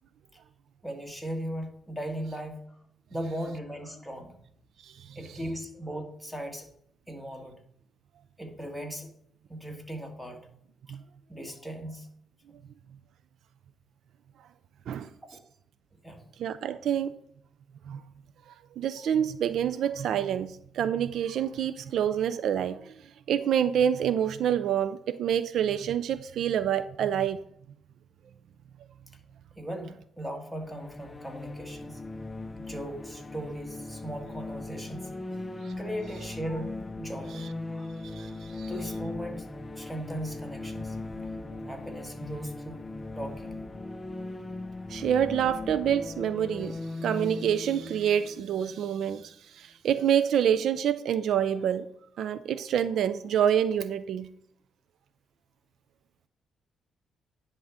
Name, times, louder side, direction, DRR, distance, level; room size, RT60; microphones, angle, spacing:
voice 1, 0.8-2.8 3.1-4.3 5.2-6.7 7.1-7.5 8.4-9.1 9.5-10.4 10.9-11.0 11.3-12.1 16.0-16.2 29.6-32.0 32.6-35.1 35.8-37.9 38.7-39.5 39.8-41.0 41.7-42.9 43.2-43.6, equal, 5° right, 1.8 m, -38 dB
voice 2, 4.8-5.2 10.9-11.0 14.9-15.1 16.4-17.1 17.9-18.0 18.8-23.0 23.3-27.4 35.6-35.7 38.0-38.7 44.9-51.9 52.2-54.3, right 9 dB, 70° right, 0.4 m, -27 dB
sound 1, 30.6-49.3, left 2 dB, 20° left, 0.6 m, -39 dB
10.0 x 3.7 x 7.1 m
cardioid pair, 90°, 0 cm